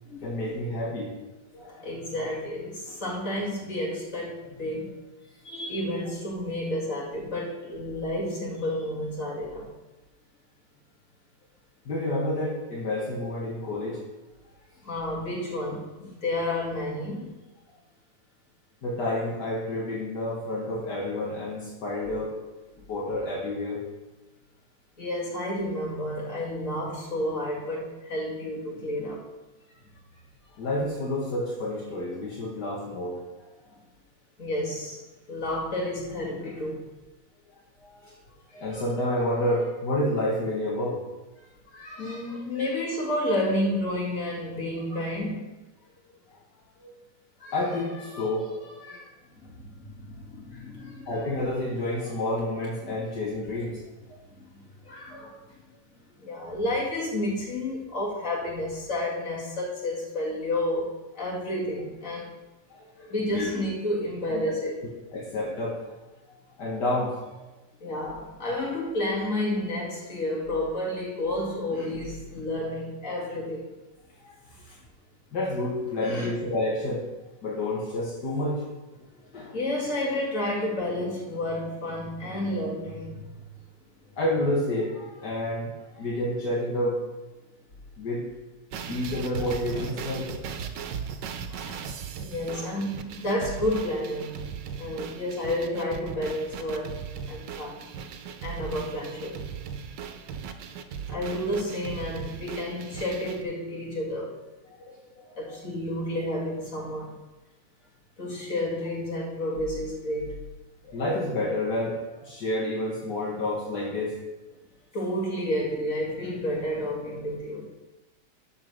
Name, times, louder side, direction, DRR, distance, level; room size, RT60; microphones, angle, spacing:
voice 1, 0.2-1.2 1.5-1.9 11.9-14.0 18.8-22.3 22.9-23.8 30.6-33.3 33.7-33.8 37.8-38.2 38.5-41.0 41.7-42.4 46.8-46.9 47.4-49.1 50.5-53.8 54.1-54.2 54.8-55.3 62.7-63.5 64.3-64.5 65.1-65.9 66.6-67.3 74.2-74.3 74.6-74.8 75.3-77.1 77.4-78.6 79.3-79.6 84.2-87.0 88.0-88.3 88.9-90.4 91.5-91.8 92.5-92.7 104.8-105.3 110.8-114.2, left 1 dB, 70° left, -4 dB, 2.1 m, -30 dB
voice 2, 1.6-4.9 5.4-9.7 14.8-17.4 25.0-29.3 34.4-35.0 35.3-36.9 42.0-45.5 49.4-51.1 52.8-53.0 54.4-54.6 55.1-55.2 56.2-62.3 63.1-64.8 67.8-73.7 76.0-76.3 79.2-83.4 92.2-94.4 94.8-97.8 98.4-99.4 101.1-104.3 105.4-107.2 108.2-110.4 114.9-117.7, left 1 dB, 45° left, -3 dB, 2.6 m, -31 dB
sound 1, 88.7-103.4, right 7 dB, 85° right, 1.4 m, -38 dB
12.5 x 4.9 x 6.2 m, 1.1 s
omnidirectional pair, 1.9 m